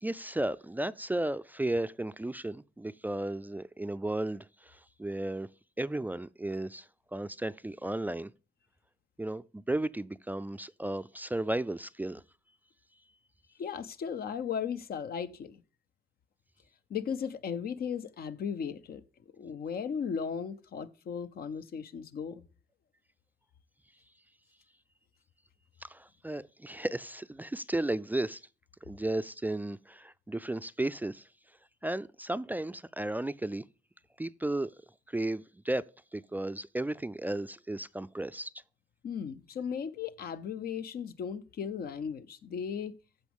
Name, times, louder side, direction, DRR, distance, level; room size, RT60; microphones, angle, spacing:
voice 1, 0.0-5.5 5.8-8.3 9.2-12.2 25.8-28.4 28.9-31.3 31.8-33.6 34.2-34.7 35.1-35.9 36.1-38.5, right 1 dB, 10° right, 0.3 m, -34 dB
voice 2, 13.6-15.6 16.9-19.0 19.3-22.4 39.0-43.0, left 7 dB, 75° left, 0.7 m, -36 dB
14.5 x 5.1 x 3.5 m
cardioid pair, 80°, 16 cm